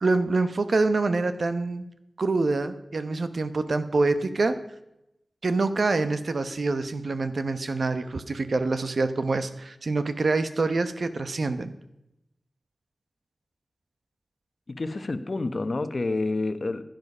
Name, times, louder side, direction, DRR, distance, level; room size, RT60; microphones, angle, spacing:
voice 1, 0.0-1.8 2.2-4.6 5.4-11.7, right 3 dB, 60° right, 11 dB, 0.9 m, -26 dB
voice 2, 14.7-16.8, left 2 dB, 45° left, 10 dB, 1.0 m, -28 dB
16.0 x 10.5 x 5.5 m, 0.88 s
wide cardioid pair, 90°, 0 cm